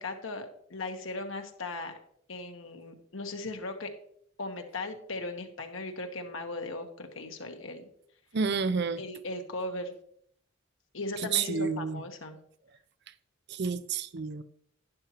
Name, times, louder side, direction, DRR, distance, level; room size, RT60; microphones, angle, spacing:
voice 1, 0.0-2.0 2.3-3.9 4.4-7.9 9.0-9.9 10.9-12.4, left 2 dB, 70° left, 1.2 m, -38 dB
voice 2, 8.3-9.0 11.3-12.0 13.5-14.4, right 5 dB, 55° right, 0.5 m, -29 dB
11.5 x 10.5 x 3.0 m
head